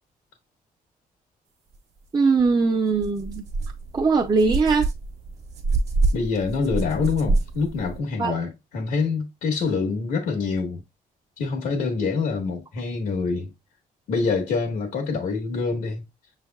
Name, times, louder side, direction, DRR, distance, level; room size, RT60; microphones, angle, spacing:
voice 1, 2.1-3.4 3.9-4.9 8.2-8.3, right 4 dB, 25° right, 0.6 m, -20 dB
sound 1, 2.4-2.5 2.9-8.0, right 3 dB, 45° right, 1.2 m, -27 dB
voice 2, 6.1-10.8 11.4-13.5 14.1-16.0, left 4 dB, 85° left, 1.3 m, -26 dB
6.1 x 3.4 x 2.3 m
cardioid pair, 100°, 15 cm